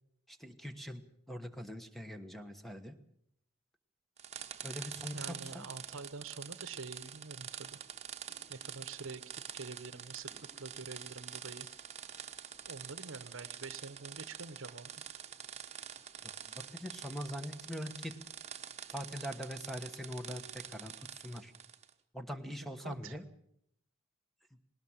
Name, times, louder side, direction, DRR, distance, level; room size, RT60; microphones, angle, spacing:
voice 1, 0.3-3.0 4.6-5.6 16.2-18.1 18.9-21.5 22.1-23.2, equal, ahead, 8 dB, 1.3 m, -43 dB
sound 1, 4.2-21.9, right 9 dB, 35° right, 1.2 m, -46 dB
voice 2, 5.1-7.8 8.5-10.3 10.6-11.7 12.7-14.9 22.8-23.2, right 4 dB, 75° right, 14 dB, 1.0 m, -46 dB
19.5 x 19.0 x 7.4 m, 0.71 s
head